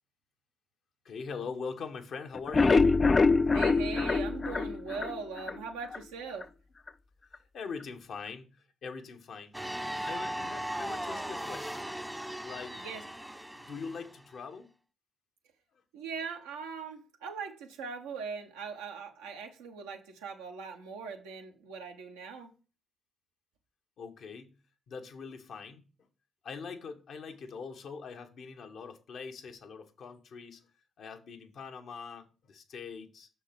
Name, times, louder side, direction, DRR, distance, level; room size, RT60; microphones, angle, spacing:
voice 1, 1.0-2.9 5.9-6.0 7.3-9.5 10.0-12.0 12.4-12.8 13.5-14.7 15.7-15.8 24.0-24.5 24.9-25.9 26.4-30.6 31.0-33.3, left 5 dB, 65° left, 1.0 m, -42 dB
sound 1, 2.3-5.6 5.9-6.0 6.4-6.5 6.9-7.0, left 4 dB, 40° left, 0.4 m, -25 dB
voice 2, 3.5-6.4 12.7-13.0 15.9-22.5, right 5 dB, 85° right, 1.1 m, -40 dB
sound 2, 9.5-14.2, right 1 dB, 5° right, 0.6 m, -38 dB
6.5 x 4.5 x 5.8 m
hypercardioid pair, 45°, 0 cm